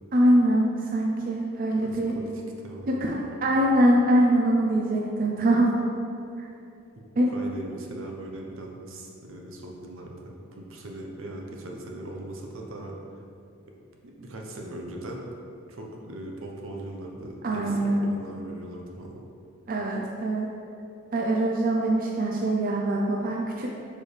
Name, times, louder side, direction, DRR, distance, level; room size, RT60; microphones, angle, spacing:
voice 1, 0.1-2.2 2.9-5.7 6.4-6.5 7.2-7.3 17.4-18.1 19.7-20.5 21.1-23.7, right 1 dB, 45° right, -1 dB, 0.5 m, -23 dB
voice 2, 1.8-3.3 7.3-13.0 14.0-15.2 15.7-19.2, right 1 dB, 75° right, 0 dB, 0.8 m, -39 dB
6.7 x 4.9 x 3.3 m, 2.6 s
head